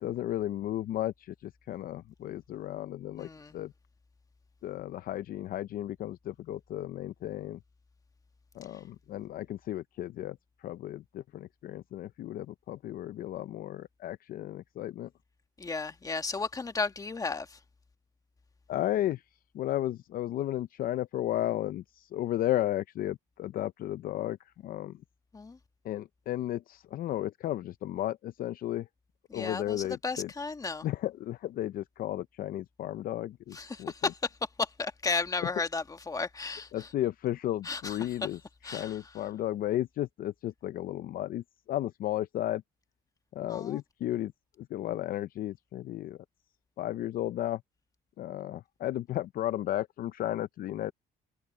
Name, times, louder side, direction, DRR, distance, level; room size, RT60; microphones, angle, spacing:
voice 1, 0.0-3.7 4.6-7.6 8.5-10.4 10.6-15.1 18.7-19.2 19.5-24.4 24.6-25.0 25.8-28.9 29.3-30.3 30.8-34.1 36.7-38.4 38.7-42.6 43.3-44.3 44.6-46.2 46.8-47.6 48.2-50.9, left 13 dB, 60° left, 0.5 m, -34 dB
voice 2, 3.2-3.5 15.6-17.6 25.3-25.6 29.3-30.8 33.5-34.2 34.6-36.9 37.6-38.1 38.6-39.0 43.5-43.8, left 4 dB, 20° left, 1.6 m, -34 dB
cardioid pair, 110°, 17 cm